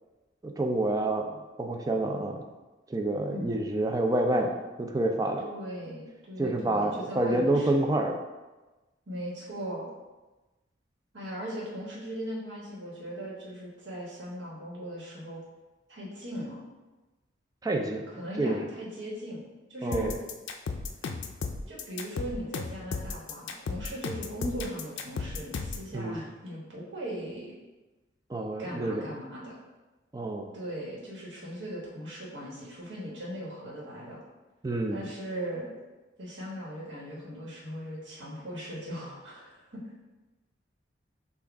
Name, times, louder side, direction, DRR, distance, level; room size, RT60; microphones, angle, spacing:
voice 1, 0.4-2.4 2.9-4.5 4.8-5.4 6.4-8.2 17.6-18.1 18.4-18.6 19.8-20.1 25.9-26.2 28.3-29.1 30.1-30.5 34.6-35.0, right 1 dB, 20° right, 2 dB, 0.4 m, -28 dB
voice 2, 5.4-7.7 9.1-9.9 11.1-15.4 15.9-16.6 18.1-19.4 19.7-20.1 21.7-27.5 28.6-29.5 30.5-34.2 34.9-35.7 36.2-40.0, equal, 70° right, -5 dB, 1.3 m, -38 dB
sound 1, 19.9-25.9, left 4 dB, 80° left, 0.4 m, -34 dB
6.0 x 2.4 x 3.5 m, 1.2 s
head